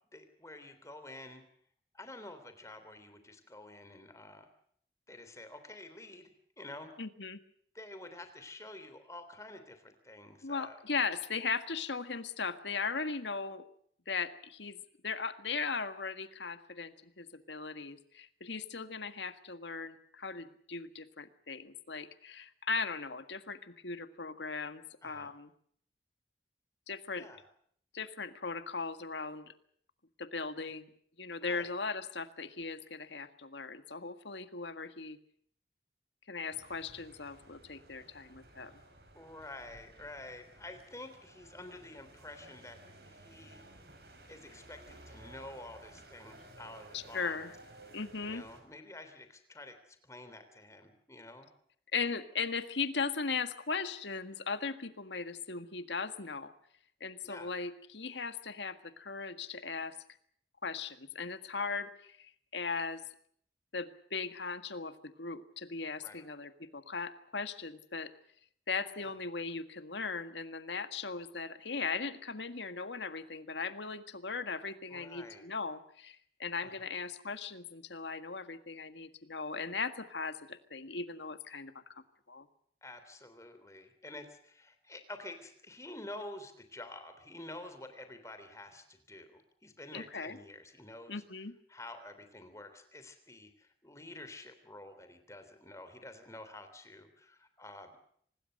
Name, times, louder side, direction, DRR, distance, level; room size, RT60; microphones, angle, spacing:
voice 1, 0.1-1.4 1.9-4.5 5.1-6.9 7.7-10.8 25.0-25.3 27.2-27.4 30.6-30.7 31.4-31.7 39.1-42.8 43.1-43.6 44.3-47.4 48.2-51.5 57.2-57.5 66.0-66.2 68.9-69.2 74.9-75.4 76.6-76.9 82.8-91.2 91.7-97.9, left 2 dB, 15° left, 9 dB, 3.4 m, -49 dB
voice 2, 7.0-7.4 10.4-13.6 14.1-25.5 26.9-27.3 27.9-29.5 30.2-30.9 31.2-35.2 36.3-38.7 46.9-47.5 47.9-48.4 51.9-56.5 57.0-59.9 60.6-63.0 63.7-68.1 68.7-81.7 82.3-82.5 89.9-90.4 91.1-91.5, left 4 dB, 90° left, 10 dB, 1.8 m, -38 dB
sound 1, 36.5-48.6, right 2 dB, 65° right, 6.0 m, -56 dB
25.5 x 19.5 x 6.6 m, 0.64 s
head